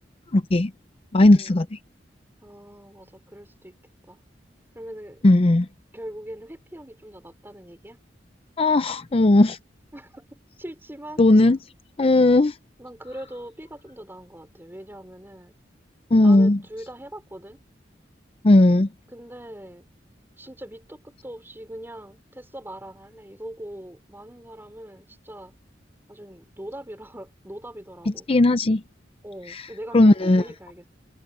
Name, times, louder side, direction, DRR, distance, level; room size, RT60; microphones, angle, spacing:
voice 1, 0.3-0.7 1.1-1.7 5.2-5.7 8.6-9.6 11.2-11.6 12.0-12.5 16.1-16.6 18.4-18.9 28.3-28.8 29.5-29.6 29.9-30.4, left 2 dB, 30° left, 0.5 m, -16 dB
voice 2, 2.4-3.7 4.1-4.2 4.7-5.3 5.9-8.0 9.9-11.6 12.8-15.5 16.2-17.6 19.1-19.9 20.4-25.5 26.1-28.3 29.2-30.9, right 1 dB, 15° right, 4.6 m, -41 dB
head